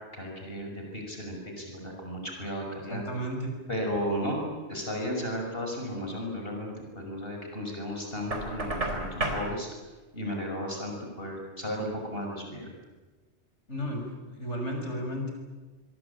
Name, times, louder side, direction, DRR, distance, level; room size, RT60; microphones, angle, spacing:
voice 1, 0.1-3.0 3.7-4.4 4.7-9.7 10.1-12.7, equal, 55° left, 1 dB, 6.3 m, -34 dB
voice 2, 2.9-3.5 13.7-14.0 14.3-15.3, equal, 85° left, 3 dB, 6.5 m, -33 dB
Knock, 8.3-9.5, right 2 dB, 85° right, 4.3 m, -31 dB
27.0 x 23.0 x 8.7 m, 1.2 s
omnidirectional pair, 1.2 m